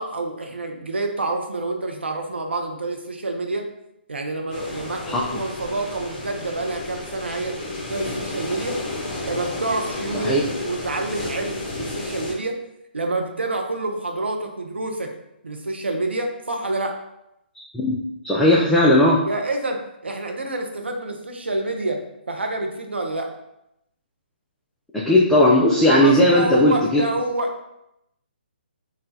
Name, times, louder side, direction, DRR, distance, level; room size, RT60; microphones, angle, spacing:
voice 1, 0.0-3.7 4.1-7.6 7.9-8.8 9.2-12.6 12.9-15.1 15.4-17.0 19.2-23.3 25.9-27.6, right 2 dB, 85° right, 4 dB, 0.5 m, -27 dB
sound 1, 4.5-12.3, left 2 dB, 35° left, 0.9 m, -32 dB
voice 2, 18.2-19.2 24.9-27.1, left 1 dB, 5° left, -5 dB, 0.3 m, -17 dB
3.9 x 2.2 x 2.6 m, 0.84 s
figure-of-eight pair, 140°, 6 cm